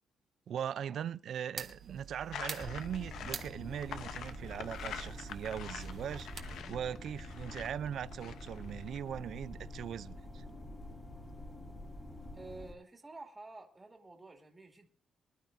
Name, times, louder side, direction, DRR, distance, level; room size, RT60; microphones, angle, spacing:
voice 1, 0.5-10.4, right 9 dB, 65° right, 0.5 m, -40 dB
sound 1, 1.6-6.6, right 6 dB, 40° right, 1.5 m, -47 dB
sound 2, 2.3-9.0, left 8 dB, 70° left, 0.9 m, -46 dB
sound 3, 2.6-12.7, left 1 dB, 25° left, 3.5 m, -47 dB
voice 2, 12.3-14.9, right 2 dB, 15° right, 2.5 m, -50 dB
24.5 x 11.5 x 2.7 m
cardioid pair, 135°, 0 cm